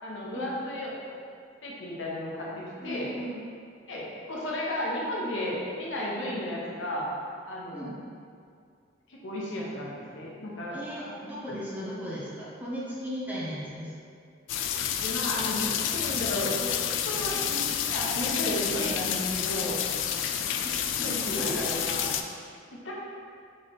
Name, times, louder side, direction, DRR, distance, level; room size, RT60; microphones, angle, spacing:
voice 1, 0.0-0.9 1.6-3.1 3.9-7.1 7.4-7.9 9.1-11.2 15.0-16.7 17.0-19.8 21.0-22.1 22.8-22.9, left 1 dB, 90° left, -4 dB, 0.9 m, -33 dB
voice 2, 2.8-3.4 7.7-8.0 10.7-13.9 20.6-21.6, equal, 10° right, -8 dB, 0.9 m, -37 dB
sound 1, 14.5-22.2, left 9 dB, 75° left, 0.3 m, -29 dB
3.8 x 3.7 x 3.5 m, 2.3 s
head